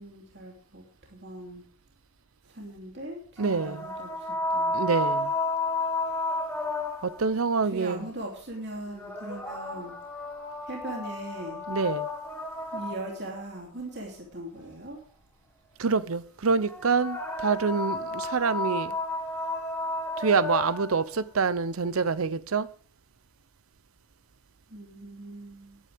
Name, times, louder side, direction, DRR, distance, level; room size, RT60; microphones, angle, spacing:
voice 1, 0.0-1.6 2.5-4.8 7.7-9.9 10.6-11.6 12.7-15.0 24.7-25.8, right 1 dB, 55° right, 3.0 m, -40 dB
sound 1, 3.4-7.3 8.9-13.4 16.6-21.0, left 2 dB, 10° left, 1.5 m, -32 dB
voice 2, 3.4-3.9 4.7-5.3 7.0-8.1 11.7-12.1 15.8-19.0 20.2-22.7, right 5 dB, 90° right, 0.7 m, -26 dB
19.5 x 9.8 x 3.5 m
head